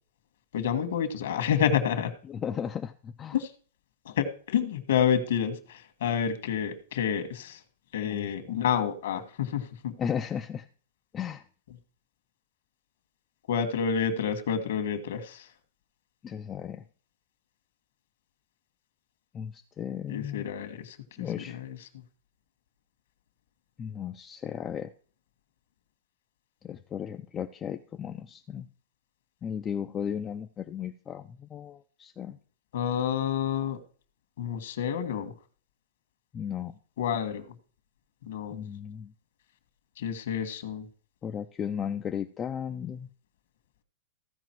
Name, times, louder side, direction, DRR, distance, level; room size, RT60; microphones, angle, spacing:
voice 1, 0.5-2.1 3.3-3.5 4.0-7.6 7.9-9.9 13.5-15.5 20.1-21.8 32.7-33.8 34.4-35.3 37.0-37.5 38.3-38.6 40.0-40.9, left 8 dB, 65° left, 8 dB, 1.5 m, -29 dB
voice 2, 2.3-3.4 8.0-8.3 10.0-10.6 11.1-11.4 16.2-16.8 19.3-20.5 21.2-21.6 23.8-24.9 26.6-28.7 29.4-32.4 36.3-36.7 38.5-39.1 41.2-43.1, left 8 dB, 15° left, 6 dB, 0.4 m, -35 dB
15.0 x 5.1 x 4.5 m, 0.43 s
supercardioid pair, 175°, 0 cm